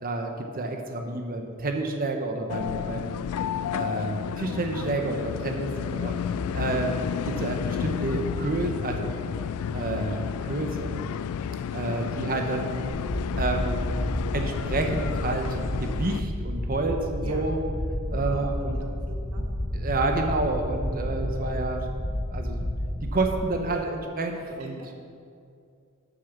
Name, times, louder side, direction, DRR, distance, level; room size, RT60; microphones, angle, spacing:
voice 1, 0.0-3.2 3.7-6.1 6.5-7.0 7.3-9.1 9.7-11.1 11.7-12.8 13.4-13.8 14.3-15.5 15.8-17.6 18.1-18.8 19.7-21.9 22.3-22.6 23.1-24.8, right 2 dB, 40° right, 4 dB, 0.8 m, -29 dB
sound 1, 2.5-16.2, left 8 dB, 75° left, 0.3 m, -31 dB
voice 2, 11.8-12.1 17.2-17.5 18.1-19.5 24.3-24.9, right 1 dB, 90° right, 0 dB, 1.3 m, -44 dB
sound 2, 12.9-23.4, left 1 dB, 30° left, 0.8 m, -31 dB
7.7 x 6.6 x 7.1 m, 2.4 s
head